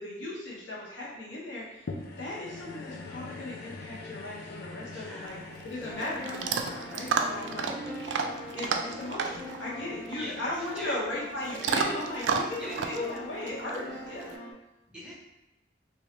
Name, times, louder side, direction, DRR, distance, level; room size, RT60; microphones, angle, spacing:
voice 1, 0.0-1.8 2.2-5.4 5.6-7.7 8.5-12.6 12.8-14.3, left 1 dB, 85° left, -6 dB, 1.1 m, -37 dB
sound 1, 1.9-12.4 13.0-13.1, left 3 dB, 55° left, 0.4 m, -45 dB
voice 2, 4.9-5.5 7.3-7.4 7.8-8.1 10.1-11.0 12.6-13.0 14.9-15.1, equal, 5° right, -8 dB, 1.1 m, -42 dB
Chewing mastication / Dog, 5.2-14.4, right 5 dB, 80° right, 0.3 m, -33 dB
sound 2, 5.8-14.5, left 1 dB, 15° left, 0.7 m, -43 dB
2.9 x 2.7 x 3.2 m, 1.0 s
head